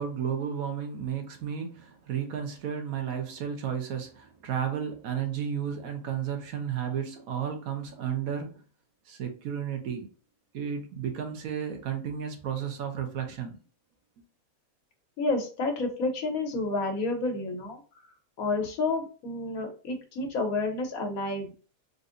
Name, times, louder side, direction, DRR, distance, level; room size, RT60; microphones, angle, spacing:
voice 1, 0.0-8.6 9.1-10.1 10.5-13.6, right 8 dB, 75° right, 1.2 m, -33 dB
voice 2, 15.2-17.8 18.4-21.5, left 3 dB, 75° left, 1.3 m, -30 dB
4.0 x 2.5 x 2.5 m
omnidirectional pair, 1.5 m